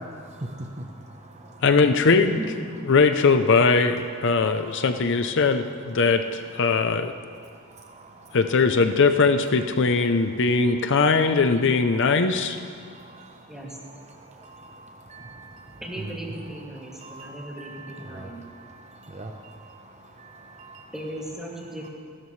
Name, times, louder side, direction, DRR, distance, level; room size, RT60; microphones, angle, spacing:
voice 1, 0.0-1.7 3.1-3.2 3.8-3.9 4.3-5.2 5.8-8.7 9.5-11.0 12.4-20.9 21.7-21.9, right 1 dB, 30° right, 4 dB, 0.8 m, -44 dB
voice 2, 1.6-2.4 2.9-7.1 8.3-12.6, left 4 dB, 55° left, 8 dB, 0.6 m, -20 dB
voice 3, 2.4-2.9 13.5-13.7 15.8-18.4 20.9-21.9, right 1 dB, ahead, -4 dB, 2.4 m, -37 dB
30.0 x 12.5 x 3.2 m, 2.2 s
head